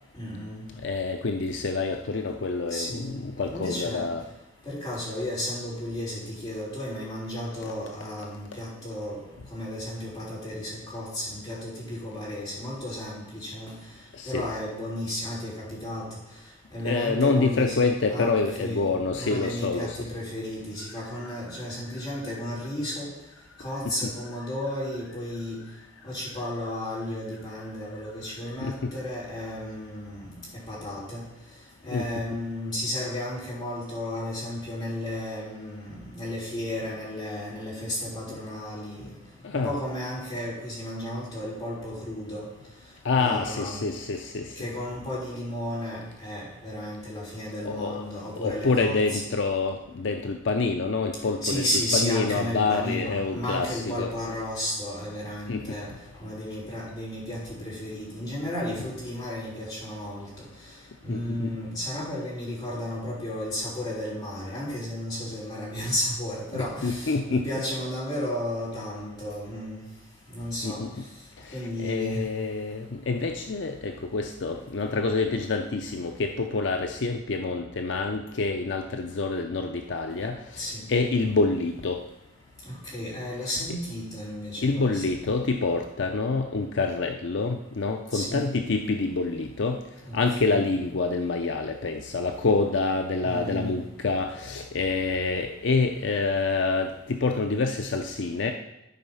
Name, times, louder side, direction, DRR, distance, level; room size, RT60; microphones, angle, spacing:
voice 1, 0.1-0.6 2.7-3.2 3.4-4.1 4.6-9.2 9.5-13.7 14.2-16.1 16.7-17.8 18.0-23.1 23.6-25.6 26.0-31.2 31.8-39.2 39.5-42.5 43.1-43.8 44.6-49.2 51.4-55.9 56.2-60.5 61.0-69.9 70.3-70.8 71.5-72.3 80.5-80.8 82.6-85.0 88.1-88.5 90.0-90.6 93.2-93.7, left 1 dB, 20° left, -8 dB, 4.0 m, -33 dB
voice 2, 0.8-4.2 14.1-14.5 16.8-20.1 23.8-24.1 28.6-28.9 31.9-32.1 39.4-39.7 43.0-44.7 47.6-48.1 48.4-51.6 51.9-54.1 55.5-55.8 61.1-61.5 66.5-67.5 70.6-71.0 71.4-82.0 84.6-89.8 90.1-98.5, left 3 dB, 65° left, 4 dB, 0.6 m, -27 dB
12.0 x 4.6 x 5.5 m, 0.93 s
head